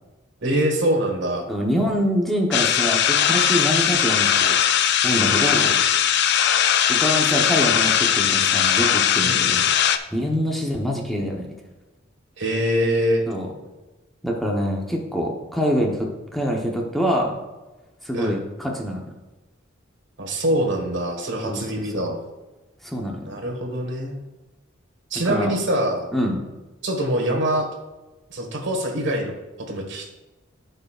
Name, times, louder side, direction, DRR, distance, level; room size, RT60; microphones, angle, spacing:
voice 1, 0.4-1.5 5.1-5.5 9.2-9.6 12.4-13.2 18.1-18.4 20.2-22.2 23.3-24.1 25.1-26.0 26.8-27.7 28.3-29.3 29.7-30.1, right 1 dB, 65° right, 3 dB, 1.6 m, -24 dB
voice 2, 1.5-4.6 5.0-5.8 6.9-9.6 10.1-11.4 13.3-13.5 14.2-17.3 18.0-19.0 21.4-21.7 21.9-22.0 22.8-23.3 25.3-25.5 26.1-26.5, equal, ahead, -1 dB, 0.9 m, -25 dB
sound 1, 2.5-10.0, left 9 dB, 60° left, 0.4 m, -19 dB
13.0 x 5.4 x 2.4 m, 1.1 s
head